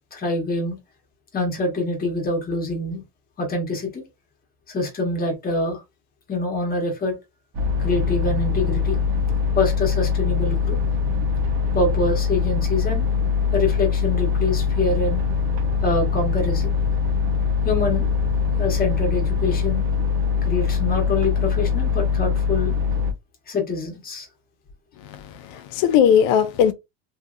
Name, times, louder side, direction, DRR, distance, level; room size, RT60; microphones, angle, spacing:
voice 1, 0.1-0.8 1.3-3.0 3.4-4.0 4.7-5.8 6.3-7.2 7.8-9.0 9.5-10.8 11.7-13.0 13.5-15.2 15.8-16.7 17.6-18.1 18.6-19.9 20.4-22.7 23.5-24.3, left 2 dB, 20° left, 1.0 m, -25 dB
sound 1, 7.5-23.1, left 6 dB, 50° right, 0.8 m, -22 dB
voice 2, 25.0-26.7, left 8 dB, 90° left, 0.6 m, -19 dB
2.9 x 2.6 x 2.5 m
cardioid pair, 155°, 47 cm